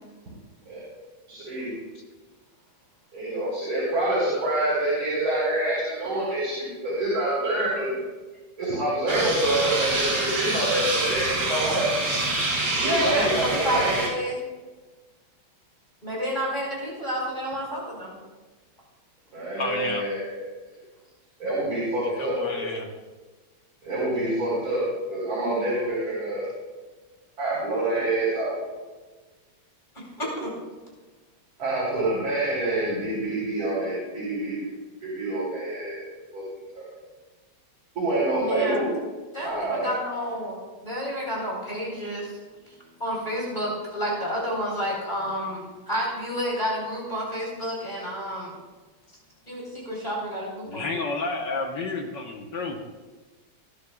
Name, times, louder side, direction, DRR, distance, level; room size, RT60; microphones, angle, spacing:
voice 1, 1.3-1.7 3.1-8.0 8.6-12.0 12.8-14.0 19.3-20.4 21.4-22.7 23.8-26.5 27.4-28.8 31.6-34.7 35.0-36.0 36.3-36.4 36.7-36.8 37.9-38.9 39.4-39.9, right 1 dB, 65° right, -7 dB, 4.7 m, -26 dB
sound 1, 9.1-14.1, right 2 dB, 85° right, 3.6 m, -26 dB
voice 2, 12.8-14.4 16.0-18.2 29.9-30.5 38.4-38.9 39.3-40.6 40.8-42.3 42.6-48.5 49.5-51.0, equal, 20° left, -4 dB, 4.4 m, -30 dB
voice 3, 19.6-20.0 22.0-22.9 50.7-52.8, left 3 dB, 60° left, 2 dB, 1.7 m, -31 dB
20.5 x 11.0 x 2.4 m, 1.3 s
omnidirectional pair, 2.3 m